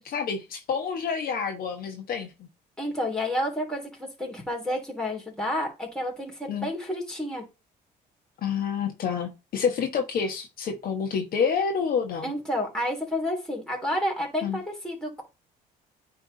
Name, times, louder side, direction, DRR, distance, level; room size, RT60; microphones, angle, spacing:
voice 1, 0.0-2.5 6.5-6.7 8.4-12.3 14.4-14.6, left 6 dB, 60° left, 1.3 m, -28 dB
voice 2, 2.8-7.4 12.2-15.2, left 1 dB, 5° left, 3.1 m, -30 dB
9.3 x 3.5 x 4.0 m
cardioid pair, 110°, 17 cm